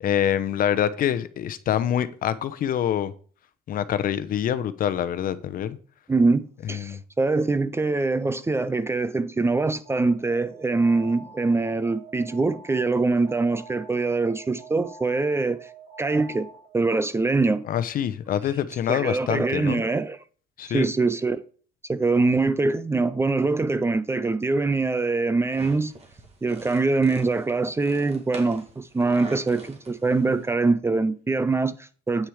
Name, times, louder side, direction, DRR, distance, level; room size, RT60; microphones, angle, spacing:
voice 1, 0.0-3.1 3.7-5.8 6.6-7.0 17.7-19.8 20.6-20.9, left 10 dB, 55° left, 0.8 m, -25 dB
voice 2, 6.1-15.7 16.0-16.5 16.7-17.7 18.9-20.2 20.7-21.4 21.9-25.9 26.4-32.3, right 3 dB, 15° right, 0.4 m, -23 dB
Alarm, 9.8-16.9, right 4 dB, 55° right, 3.9 m, -46 dB
sound 1, 25.5-30.5, right 2 dB, 35° right, 2.2 m, -43 dB
8.6 x 6.2 x 4.8 m
cardioid pair, 110°, 17 cm